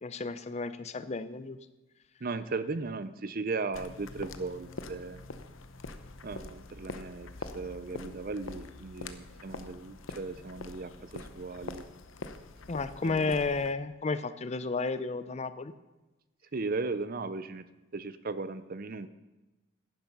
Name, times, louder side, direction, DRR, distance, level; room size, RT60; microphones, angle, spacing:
voice 1, 0.0-1.6 12.7-15.7, left 3 dB, 35° left, 13 dB, 0.5 m, -32 dB
voice 2, 2.2-5.2 6.2-11.9 13.0-13.4 16.5-17.6 17.9-19.1, right 3 dB, 45° right, 13 dB, 0.6 m, -37 dB
sound 1, 3.7-13.7, left 3 dB, 70° left, 0.8 m, -44 dB
11.0 x 10.5 x 5.4 m, 1.1 s
head